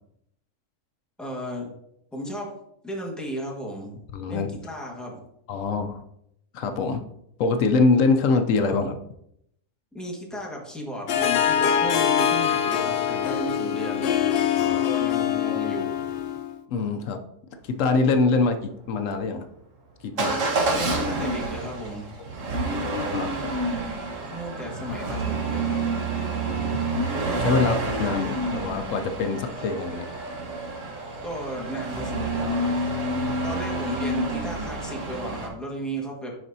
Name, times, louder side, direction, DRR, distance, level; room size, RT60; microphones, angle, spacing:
voice 1, 1.2-1.7 2.1-2.5 2.8-3.9 4.3-5.2 9.9-14.3 14.6-16.0 20.3-22.1 24.3-25.8 31.2-32.7 33.4-36.3, equal, ahead, -2 dB, 1.3 m, -34 dB
voice 2, 4.1-4.5 5.5-6.0 6.5-7.0 7.4-9.0 14.5-14.8 16.7-17.2 17.6-19.5 20.0-20.4 23.0-23.3 26.5-26.8 27.4-30.1 33.0-33.6, left 4 dB, 80° left, 6 dB, 1.0 m, -24 dB
Harp, 11.1-16.5, left 9 dB, 60° left, 0.7 m, -24 dB
Motor vehicle (road) / Engine starting / Accelerating revving vroom, 20.2-35.5, right 2 dB, 75° right, 1.5 m, -28 dB
11.0 x 4.2 x 2.7 m, 0.76 s
omnidirectional pair, 1.3 m